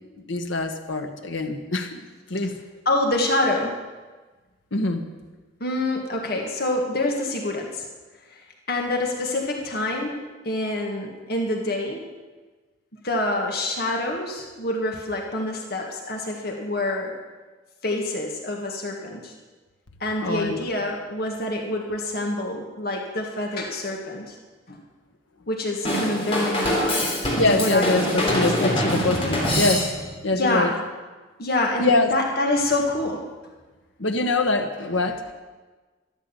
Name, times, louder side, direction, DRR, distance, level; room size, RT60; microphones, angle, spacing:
voice 1, 0.3-2.0 2.3-2.6 4.7-5.0 20.2-20.6 27.4-29.9 30.2-30.7 31.8-32.1 34.0-35.3, left 2 dB, 90° left, 5 dB, 1.5 m, -24 dB
voice 2, 2.9-3.7 5.6-7.9 8.3-12.0 13.0-17.1 17.8-19.3 20.0-24.4 24.7-24.8 25.5-27.1 27.6-28.8 30.3-30.8 31.4-33.2, left 2 dB, 55° left, 1 dB, 1.8 m, -26 dB
Drum kit / Drum, 25.9-30.2, equal, 30° left, 3.6 m, -24 dB
13.5 x 12.5 x 7.1 m, 1.3 s
head